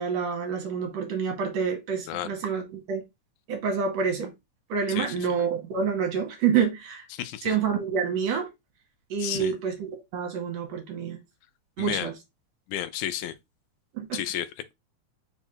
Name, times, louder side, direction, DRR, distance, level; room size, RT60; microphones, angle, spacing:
voice 1, 0.0-3.0 3.5-4.3 4.7-7.0 7.4-8.5 9.1-11.2 11.8-12.1 14.0-14.2, right 6 dB, 70° right, 2.0 m, -28 dB
voice 2, 7.1-7.5 9.2-9.5 11.8-12.1 12.7-13.4 14.1-14.7, left 11 dB, 85° left, 2.0 m, -32 dB
4.9 x 2.4 x 4.3 m
omnidirectional pair, 3.5 m